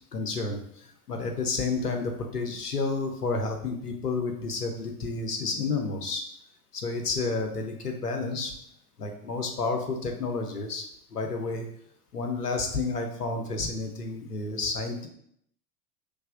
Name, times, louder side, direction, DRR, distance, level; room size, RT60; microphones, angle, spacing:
voice 1, 0.1-6.2 6.7-8.5 9.0-10.9 11.1-11.7 12.1-15.1, left 3 dB, 90° left, 4 dB, 0.9 m, -30 dB
5.4 x 3.3 x 2.5 m, 0.70 s
figure-of-eight pair, 95°, 46 cm